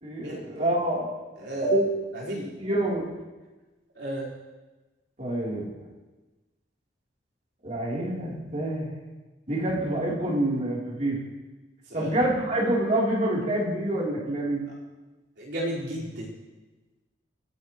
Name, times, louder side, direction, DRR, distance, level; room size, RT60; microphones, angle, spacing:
voice 1, 0.0-1.2 1.6-1.9 2.6-3.1 5.2-5.7 7.6-8.9 9.5-11.2 11.9-14.7, right 1 dB, 40° right, -5 dB, 3.5 m, -26 dB
voice 2, 1.4-1.7 2.1-2.5 3.9-4.3 11.9-12.1 15.4-16.3, right 1 dB, 75° right, -6 dB, 4.7 m, -33 dB
24.0 x 10.5 x 3.2 m, 1.2 s
head